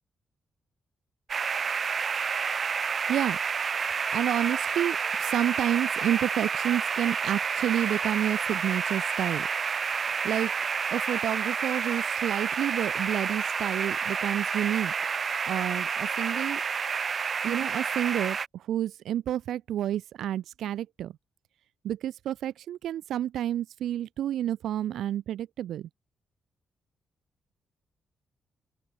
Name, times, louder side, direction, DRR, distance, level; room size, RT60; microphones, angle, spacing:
sound 1, 1.3-18.5, right 6 dB, 45° right, 1.2 m, -29 dB
voice 1, 4.1-9.5 10.2-10.5 10.9-14.9 15.5-16.6 17.4-21.1 21.8-25.9, right 11 dB, 85° right, 4.5 m, -30 dB
open air
cardioid pair, 105°, 0 cm